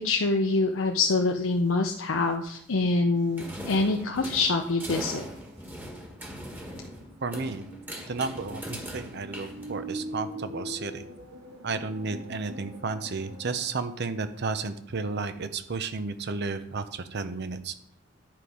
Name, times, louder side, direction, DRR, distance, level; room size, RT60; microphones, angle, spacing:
voice 1, 0.0-5.2, left 3 dB, 75° left, 3 dB, 0.6 m, -25 dB
sound 1, 3.1-4.5 4.8-5.4 5.8-5.9 6.6-13.8, right 1 dB, 75° right, 1.8 m, -43 dB
sound 2, 3.4-10.1, equal, 10° right, 1.5 m, -40 dB
voice 2, 7.2-7.6 8.1-11.0 11.6-17.7, right 4 dB, 55° right, 11 dB, 0.8 m, -32 dB
10.5 x 5.3 x 4.9 m, 0.70 s
head